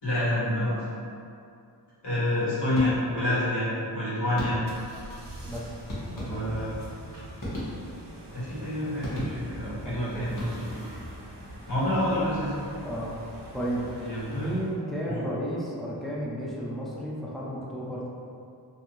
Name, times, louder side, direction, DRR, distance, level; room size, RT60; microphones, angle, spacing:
voice 1, 0.0-0.8 2.0-3.7 3.9-4.6 6.2-6.7 8.3-10.9 11.7-12.7 14.0-14.5 15.0-15.2, left 1 dB, 80° left, -11 dB, 1.3 m, -28 dB
sound 1, 2.7-3.3 4.4-4.9 5.9-6.7 7.4-8.2 9.0-9.7 10.2-10.9, left 1 dB, 50° left, 0.9 m, -37 dB
sound 2, 4.6-14.8, right 1 dB, 55° right, 0.6 m, -43 dB
voice 2, 5.4-5.7 6.1-6.6 9.8-10.3 12.8-13.1 13.5-13.9 14.2-18.1, equal, ahead, -7 dB, 0.3 m, -33 dB
2.7 x 2.5 x 3.0 m, 2.5 s
wide cardioid pair, 175°, 42 cm